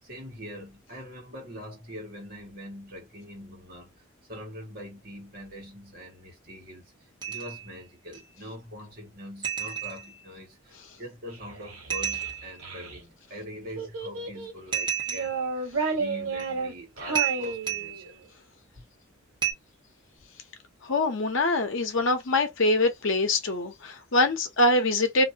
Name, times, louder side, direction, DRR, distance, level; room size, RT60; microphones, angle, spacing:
voice 1, 0.0-3.9 4.3-18.1, equal, 45° right, 1.4 m, -43 dB
sound 1, 7.2-7.7 8.1-8.2 9.4-10.3 11.9-12.6 14.7-15.5 16.4-16.5 17.1-18.1 19.4-19.5, right 9 dB, 20° right, 0.9 m, -31 dB
Child speech kid speaking, 11.3-13.0 13.7-14.6 15.1-18.2, right 4 dB, 85° right, 1.1 m, -32 dB
voice 2, 20.8-25.2, left 2 dB, 65° left, 0.8 m, -24 dB
2.7 x 2.6 x 2.7 m
head